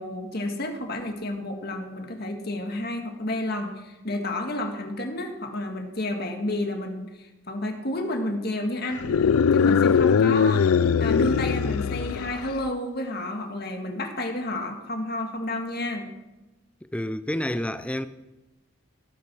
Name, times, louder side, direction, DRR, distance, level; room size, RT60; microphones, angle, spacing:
voice 1, 0.0-9.0 9.5-10.6 11.0-16.1, left 1 dB, 45° left, 1.9 m, -31 dB
sound 1, 9.0-12.6, left 6 dB, 85° left, 0.4 m, -21 dB
voice 2, 16.9-18.1, left 1 dB, 5° left, 0.5 m, -29 dB
17.5 x 8.6 x 6.2 m
head